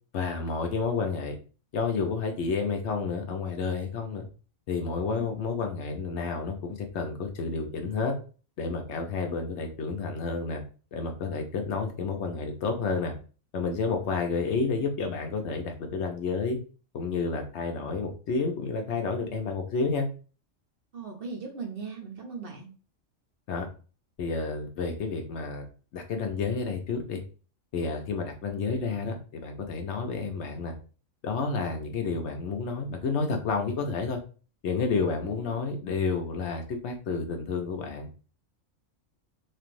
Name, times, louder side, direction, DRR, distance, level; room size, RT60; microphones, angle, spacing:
voice 1, 0.1-1.4 1.7-4.2 4.7-8.1 8.6-10.6 10.9-13.1 13.5-16.6 16.9-20.1 23.5-23.7 24.2-25.6 25.9-27.2 27.7-30.7 31.2-34.2 34.6-38.1, left 4 dB, 65° left, 4 dB, 0.8 m, -30 dB
voice 2, 20.9-22.7 35.1-35.6, right 4 dB, 55° right, 0 dB, 0.7 m, -39 dB
3.1 x 2.5 x 2.5 m, 0.36 s
omnidirectional pair, 1.4 m